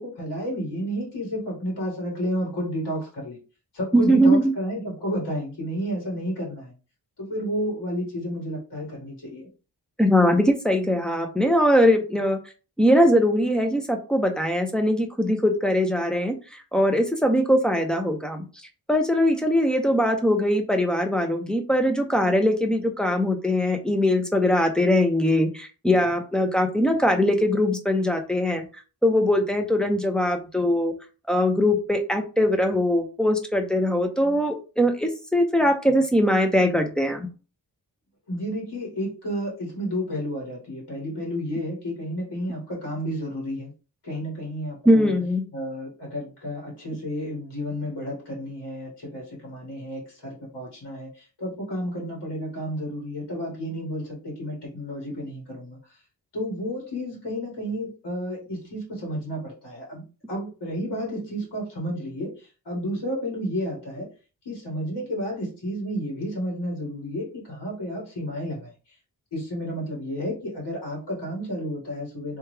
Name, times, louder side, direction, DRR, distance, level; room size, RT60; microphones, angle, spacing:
voice 1, 0.0-3.4 3.7-6.7 7.2-9.5 38.3-43.7 44.0-45.1 45.5-55.8 56.3-60.0 60.3-64.1 64.5-68.7 69.3-72.4, equal, 80° left, -4 dB, 2.0 m, -31 dB
voice 2, 3.9-4.5 10.0-12.4 12.8-18.4 18.9-28.6 29.0-30.9 31.3-37.3 44.9-45.4, equal, ahead, 4 dB, 0.6 m, -21 dB
3.4 x 3.2 x 3.3 m, 0.34 s
wide cardioid pair, 150°, 40 cm